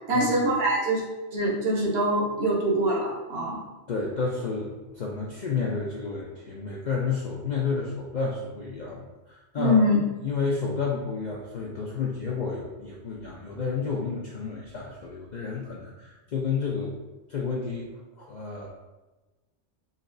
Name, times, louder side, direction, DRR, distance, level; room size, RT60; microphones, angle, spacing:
voice 1, 0.1-1.0 1.3-3.6 9.6-10.0, equal, 60° right, -3 dB, 1.1 m, -24 dB
voice 2, 3.9-9.8 10.2-17.0 17.3-17.9 18.2-18.7, left 5 dB, 60° left, -3 dB, 0.5 m, -31 dB
4.1 x 2.9 x 2.6 m, 1.1 s
omnidirectional pair, 1.2 m